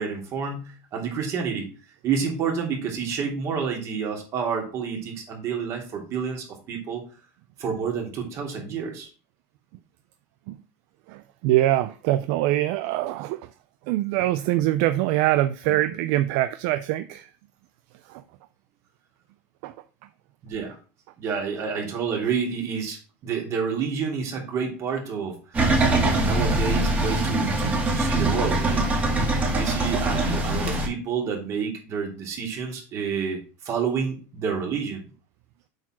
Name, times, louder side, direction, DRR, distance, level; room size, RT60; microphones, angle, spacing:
voice 1, 0.0-1.7 2.0-7.0 7.6-9.1 20.4-20.8 21.2-25.6 26.0-35.1, right 6 dB, 40° right, 3.1 m, -29 dB
voice 2, 11.1-13.4 13.9-17.3 18.1-18.2 19.6-19.7, right 15 dB, 60° right, 0.5 m, -23 dB
sound 1, 25.5-30.9, right 2 dB, 20° right, 2.3 m, -23 dB
7.8 x 4.9 x 6.0 m
supercardioid pair, 150°, 8 cm